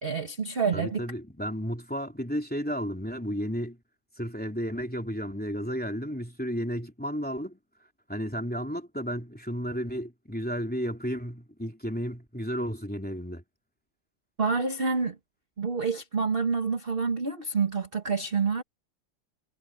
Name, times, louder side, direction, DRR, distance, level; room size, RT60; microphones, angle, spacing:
voice 1, 0.0-1.0 14.4-15.2 15.6-18.6, right 5 dB, 30° right, 1.4 m, -27 dB
voice 2, 0.7-3.8 4.2-7.6 8.1-13.4, equal, 5° left, 3.0 m, -33 dB
omnidirectional pair, 2.4 m